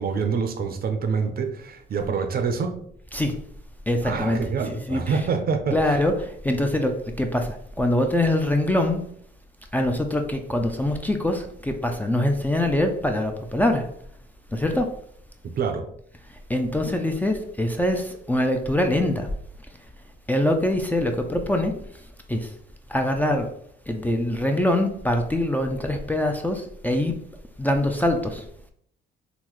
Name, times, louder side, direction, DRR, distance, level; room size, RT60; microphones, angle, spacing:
voice 1, 0.0-2.8 4.0-6.0 15.6-15.9, right 5 dB, 50° right, 0.5 m, -26 dB
voice 2, 3.9-4.4 4.9-5.2 5.7-9.0 9.7-13.9 14.5-14.9 16.5-19.3 20.3-21.7 22.3-22.5 22.9-23.5 23.9-27.1 27.6-28.4, left 1 dB, 10° left, 0.3 m, -23 dB
3.7 x 2.1 x 3.0 m
cardioid pair, 90°, 20 cm